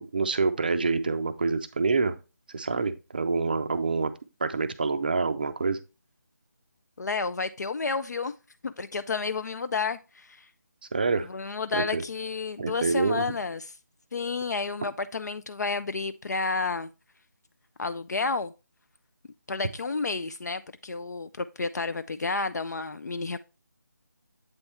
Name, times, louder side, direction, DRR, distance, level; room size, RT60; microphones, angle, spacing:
voice 1, 0.0-2.2 2.5-4.1 4.4-5.8 10.9-11.3 11.7-12.0 12.6-13.3, right 4 dB, 30° right, 0.4 m, -26 dB
voice 2, 7.0-8.3 8.6-10.5 11.3-13.7 14.1-16.9 17.8-18.5 19.5-23.4, left 4 dB, 65° left, 0.4 m, -31 dB
8.0 x 3.5 x 4.1 m
figure-of-eight pair, 170°, 10 cm